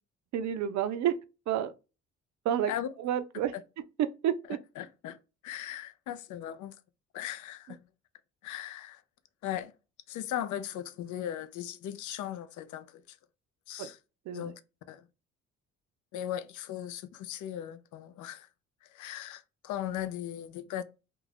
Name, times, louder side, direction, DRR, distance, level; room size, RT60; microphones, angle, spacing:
voice 1, 0.3-1.2 1.5-1.7 2.5-2.7 3.0-3.5 4.0-4.6 13.8-13.9 14.3-14.5, right 10 dB, 65° right, 0.4 m, -29 dB
voice 2, 4.5-5.2 5.4-6.8 7.1-7.8 8.4-9.0 9.4-9.7 10.1-13.2 13.7-14.0 14.3-14.6 14.9-15.0 16.1-18.5 18.8-20.8, left 11 dB, 75° left, 0.5 m, -38 dB
2.5 x 2.2 x 3.3 m
cardioid pair, 90°, 30 cm